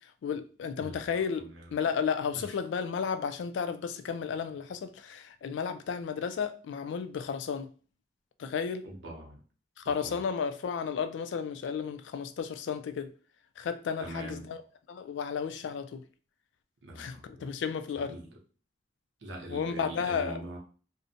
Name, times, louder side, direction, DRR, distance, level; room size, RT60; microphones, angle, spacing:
voice 1, 0.2-1.5 1.7-7.7 8.4-8.9 9.8-13.1 13.6-14.6 14.9-16.0 17.0-18.1 19.5-20.4, left 6 dB, 80° left, 0.3 m, -33 dB
voice 2, 1.4-1.7 2.3-2.4 8.8-9.4 9.8-10.2 14.0-14.5 16.8-17.5 17.9-18.3 19.2-20.6, right 1 dB, 90° right, 0.7 m, -43 dB
2.5 x 2.1 x 2.6 m
head